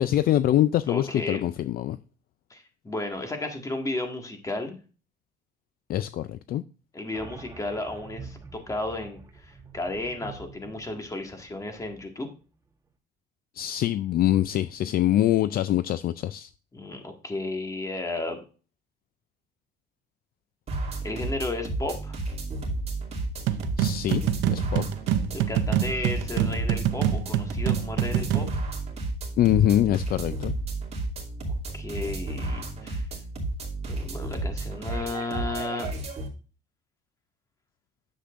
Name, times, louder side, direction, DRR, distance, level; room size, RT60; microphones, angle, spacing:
voice 1, 0.0-2.0 5.9-6.6 13.6-16.5 23.8-24.9 29.4-30.5, left 12 dB, 55° left, 0.4 m, -24 dB
voice 2, 0.9-1.4 2.5-4.8 6.9-12.3 16.7-18.4 21.0-22.2 25.3-28.5 31.7-33.1 33.9-35.9, left 2 dB, 15° left, 1.8 m, -33 dB
sound 1, 7.1-12.4, right 4 dB, 15° right, 1.1 m, -46 dB
sound 2, 20.7-36.3, right 2 dB, 35° right, 2.7 m, -32 dB
sound 3, 23.5-28.6, right 11 dB, 90° right, 0.7 m, -26 dB
10.0 x 7.4 x 2.5 m
cardioid pair, 130°, 19 cm